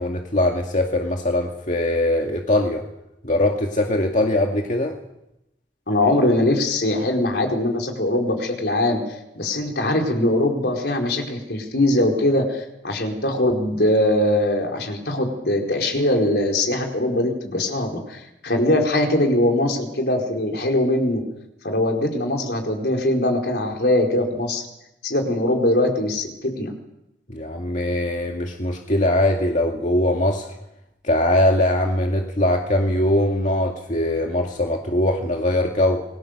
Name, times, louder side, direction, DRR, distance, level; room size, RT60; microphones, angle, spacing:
voice 1, 0.0-2.8 3.2-4.9 27.3-30.5 31.0-36.0, left 1 dB, 45° left, 1 dB, 2.2 m, -21 dB
voice 2, 5.9-9.0 9.3-21.2 21.6-24.6 25.0-26.7, left 1 dB, 70° left, 2 dB, 4.6 m, -21 dB
28.5 x 21.5 x 6.7 m, 0.87 s
head